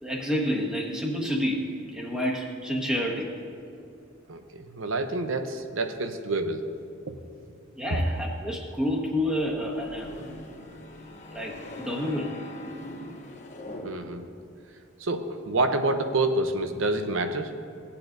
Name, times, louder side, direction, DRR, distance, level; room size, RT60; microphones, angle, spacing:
voice 1, 0.0-3.3 7.7-10.1 11.3-12.4, equal, 5° right, -2 dB, 1.3 m, -29 dB
voice 2, 4.3-6.6 7.1-7.2 13.8-14.2 15.0-17.5, right 2 dB, 65° right, 7 dB, 0.7 m, -28 dB
sound 1, 9.1-14.4, left 1 dB, 35° left, 0.9 m, -42 dB
17.0 x 8.6 x 2.6 m, 2.6 s
head